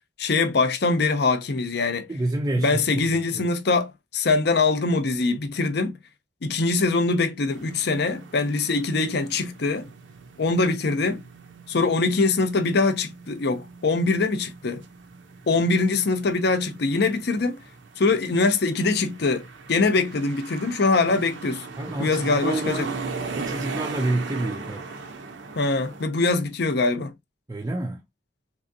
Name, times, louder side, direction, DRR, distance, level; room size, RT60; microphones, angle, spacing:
voice 1, 0.2-2.1 2.6-6.0 6.4-9.9 10.4-11.2 11.7-14.8 15.5-17.6 18.0-21.7 22.0-22.9 25.6-27.1, left 3 dB, 60° left, 0.6 m, -23 dB
voice 2, 2.1-3.5 21.8-22.9 23.3-24.9 27.5-28.0, right 2 dB, 20° right, 0.4 m, -28 dB
sound 1, 7.5-26.0, right 4 dB, 80° right, 0.8 m, -39 dB
3.5 x 3.0 x 2.7 m
head